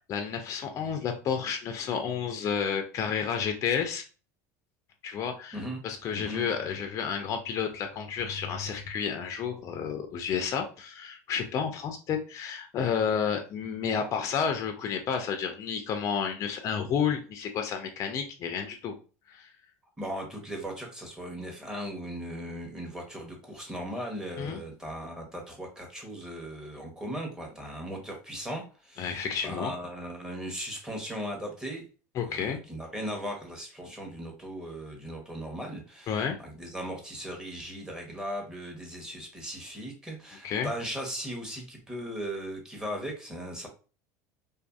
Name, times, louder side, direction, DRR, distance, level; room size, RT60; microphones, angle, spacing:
voice 1, 0.1-4.0 5.0-19.0 19.3-19.5 24.4-24.6 29.0-29.7 32.2-32.6 36.1-36.4 40.4-40.7, left 7 dB, 40° left, 5 dB, 0.4 m, -31 dB
voice 2, 6.1-6.5 20.0-31.9 32.2-43.7, equal, 5° right, 0 dB, 0.9 m, -38 dB
2.5 x 2.5 x 2.4 m, 0.36 s
supercardioid pair, 105°, 8 cm